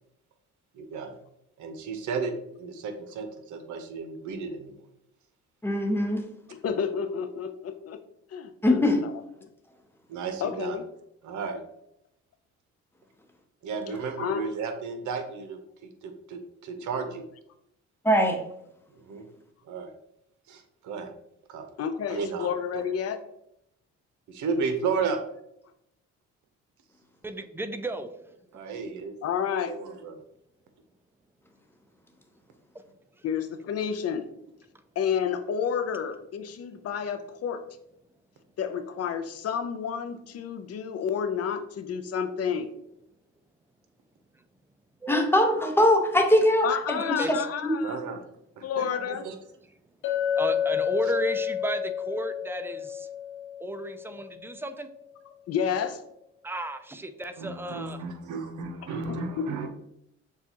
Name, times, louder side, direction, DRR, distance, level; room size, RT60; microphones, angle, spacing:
voice 1, 0.7-1.2 1.6-4.8 10.1-10.8 11.2-11.6 13.6-17.2 19.0-19.2 19.6-19.9 20.5-21.1 21.5-21.6 22.1-22.5 22.7-22.8 24.3-25.2 28.5-29.1 29.7-30.2 47.8-48.2 48.6-49.3 51.0-51.1 57.4-59.7, right 5 dB, 75° right, 7 dB, 0.8 m, -33 dB
voice 2, 5.6-6.2 8.6-9.0 18.0-18.4 45.1-47.4 47.6-47.8, left 1 dB, 10° left, 3 dB, 0.8 m, -22 dB
voice 3, 6.5-8.0 8.3-9.1 10.4-10.8 14.2-14.4 21.8-23.2 29.2-29.7 33.2-34.3 35.0-37.6 38.6-42.7 46.6-48.0 48.6-49.3 55.5-56.0 59.1-59.5, left 7 dB, 55° left, 9 dB, 0.5 m, -30 dB
voice 4, 27.2-28.1 45.0-45.2 47.0-47.3 50.4-53.1 53.6-54.9 56.4-58.0, right 1 dB, 10° right, 9 dB, 0.3 m, -33 dB
Chink clink, 50.0-54.5, left 9 dB, 85° left, 1.0 m, -30 dB
6.8 x 2.4 x 2.8 m, 0.78 s
cardioid pair, 90°, 30 cm